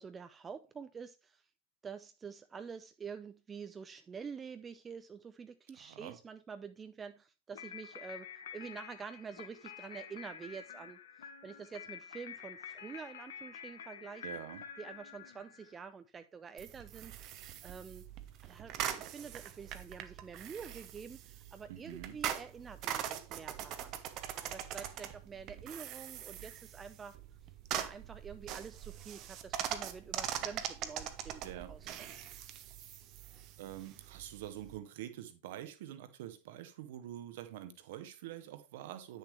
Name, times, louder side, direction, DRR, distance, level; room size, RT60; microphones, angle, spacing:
voice 1, 0.0-1.5 1.8-14.3 14.8-18.1 18.4-24.0 24.5-27.2 27.7-31.9, right 6 dB, 20° right, 0.5 m, -48 dB
voice 2, 5.8-6.2 14.2-14.6 21.7-22.2 31.4-31.8 33.6-39.2, right 12 dB, 55° right, 1.2 m, -46 dB
sound 1, 7.5-15.9, left 7 dB, 60° left, 1.0 m, -49 dB
sound 2, 16.6-34.8, right 10 dB, 35° right, 0.8 m, -42 dB
9.9 x 6.6 x 3.3 m
figure-of-eight pair, 90°, 0 cm